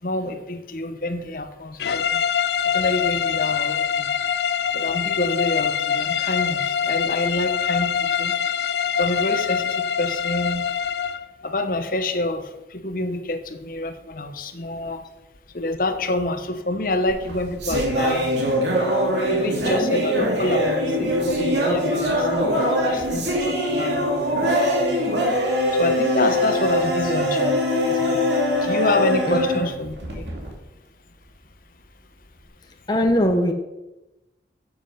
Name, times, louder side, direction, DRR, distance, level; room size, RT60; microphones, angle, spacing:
voice 1, 0.0-2.2 2.6-4.1 4.7-8.4 9.0-10.7 11.4-15.0 15.5-18.6 19.3-25.0 25.7-27.5 27.8-30.2, left 2 dB, 50° left, 8 dB, 0.9 m, -27 dB
sound 1, 1.8-11.3, left 8 dB, 70° left, 0.4 m, -24 dB
sound 2, 17.1-30.5, equal, 85° right, 2.7 m, -22 dB
voice 2, 32.9-33.5, equal, 25° left, 4 dB, 0.7 m, -19 dB
10.0 x 7.4 x 5.7 m, 1.0 s
head